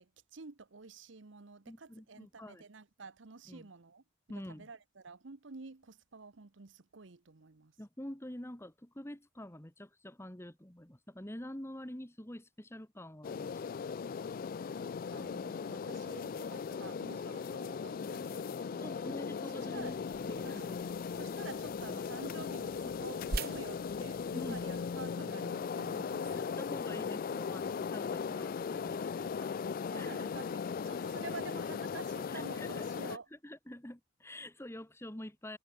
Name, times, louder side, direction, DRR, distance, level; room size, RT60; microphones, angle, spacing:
voice 1, 0.0-4.0 4.3-7.7 15.1-19.2 19.5-20.0 20.3-20.9 21.1-26.4 29.4-29.5 29.9-33.3, right 4 dB, 70° right, 1.0 m, -49 dB
voice 2, 1.7-2.6 3.5-3.7 4.3-4.7 7.8-13.6 18.0-18.1 18.8-20.0 20.2-20.8 24.3-24.7 26.3-29.3 29.9-30.2 32.3-35.6, left 1 dB, 15° left, 1.5 m, -46 dB
sound 1, 13.2-33.2, left 6 dB, 45° left, 0.3 m, -38 dB
sound 2, 19.7-25.1, right 3 dB, 50° right, 1.3 m, -45 dB
head